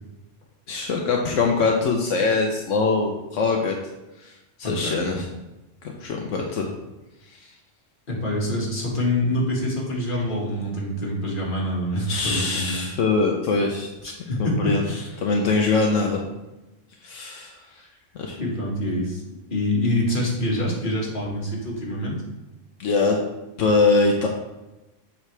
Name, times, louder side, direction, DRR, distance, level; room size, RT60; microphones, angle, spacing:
voice 1, 0.7-3.8 4.2-4.3 4.6-5.3 5.8-6.7 7.3-7.5 12.1-13.9 14.4-14.8 15.2-16.2 17.0-17.6 18.1-18.4 22.8-23.2 23.6-24.3, left 4 dB, 80° left, 1 dB, 1.1 m, -22 dB
voice 2, 4.6-5.2 8.1-12.9 14.0-15.1 18.4-19.2 19.5-22.2, left 1 dB, 40° left, -4 dB, 1.9 m, -26 dB
7.4 x 5.7 x 3.3 m, 1.0 s
omnidirectional pair, 1.3 m